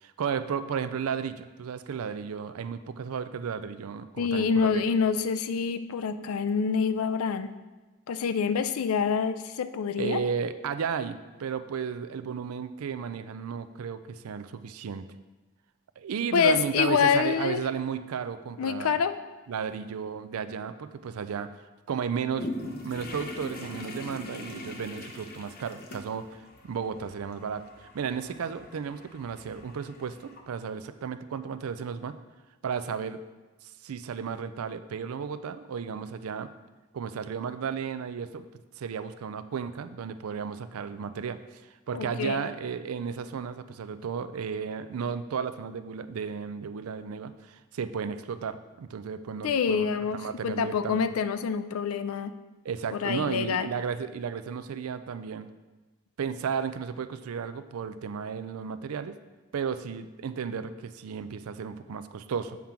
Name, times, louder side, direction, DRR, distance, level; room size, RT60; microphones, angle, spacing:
voice 1, 0.0-4.8 10.0-15.0 16.0-19.0 19.5-21.5 21.9-22.5 22.8-32.1 32.6-33.2 33.6-36.5 36.9-38.4 38.8-41.6 41.9-51.0 52.6-55.5 56.2-59.2 59.5-62.6, right 6 dB, 85° right, 12 dB, 0.4 m, -34 dB
voice 2, 4.2-7.5 8.1-10.2 16.3-17.6 18.6-19.1 41.9-42.4 49.4-52.3 52.9-53.7, left 6 dB, 80° left, 12 dB, 0.4 m, -26 dB
sound 1, 22.4-30.4, left 1 dB, 45° left, 0.8 m, -42 dB
7.2 x 3.7 x 5.7 m, 1.2 s
head